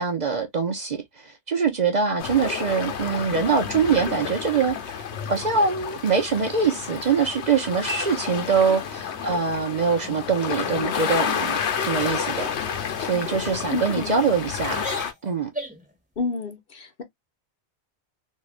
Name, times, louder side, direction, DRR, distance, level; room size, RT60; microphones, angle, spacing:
voice 1, 0.0-12.5 13.0-14.8 15.2-15.5, right 5 dB, 50° right, 0.7 m, -24 dB
sound 1, 2.2-15.1, left 7 dB, 85° left, 1.0 m, -30 dB
sound 2, 9.0-9.6 10.0-10.3 10.6-10.9 11.3-11.6 12.3-12.6 13.1-13.3 14.0-14.4 14.7-15.9, equal, 5° right, 1.2 m, -38 dB
voice 2, 13.7-14.1 16.2-17.0, left 4 dB, 60° left, 1.0 m, -29 dB
3.2 x 2.7 x 2.3 m
omnidirectional pair, 1.1 m